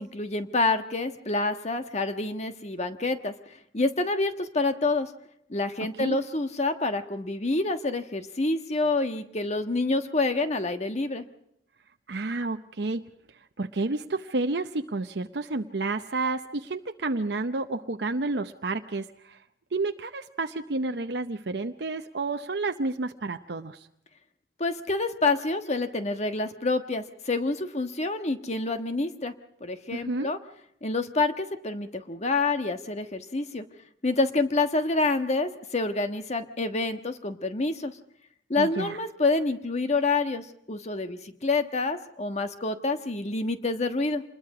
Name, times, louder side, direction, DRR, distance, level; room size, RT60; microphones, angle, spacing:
voice 1, 0.0-3.3 3.7-5.1 5.5-11.3 24.6-29.3 29.6-30.4 30.8-33.6 34.0-37.9 38.5-44.2, left 3 dB, 40° left, 8 dB, 1.4 m, -27 dB
voice 2, 12.1-13.1 13.6-19.4 19.7-23.9 29.9-30.3 38.6-39.0, right 3 dB, 65° right, 6 dB, 0.8 m, -30 dB
27.0 x 21.0 x 4.9 m, 0.74 s
head